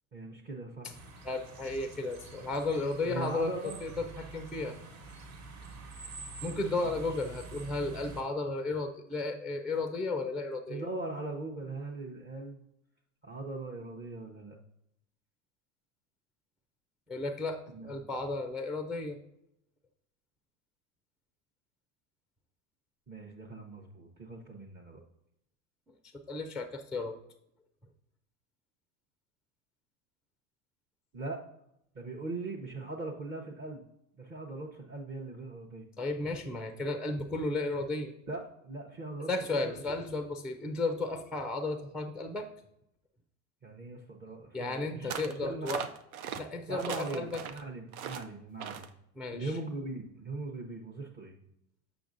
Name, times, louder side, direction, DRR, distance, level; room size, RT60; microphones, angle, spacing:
voice 1, 0.1-0.9 3.0-3.8 6.8-7.0 10.7-12.6 13.2-14.6 17.7-18.1 23.1-25.0 31.1-31.4 31.9-33.8 34.1-35.9 38.3-40.2 43.6-45.8 46.7-48.9 49.3-51.4, right 2 dB, 25° right, 2 dB, 0.8 m, -40 dB
sound 1, 0.9-8.2, right 3 dB, 45° right, 1.3 m, -47 dB
voice 2, 1.2-4.7 6.4-10.9 17.1-19.2 26.3-27.1 36.0-38.1 39.3-42.5 44.5-45.8 46.4-47.4 49.2-49.5, left 2 dB, ahead, 7 dB, 0.4 m, -34 dB
sound 2, 45.1-45.4 45.7-46.4 46.8-47.6 47.9-48.2 48.6-48.9, right 7 dB, 85° right, 0.7 m, -39 dB
6.9 x 5.7 x 2.6 m, 0.79 s
hypercardioid pair, 95°, 41 cm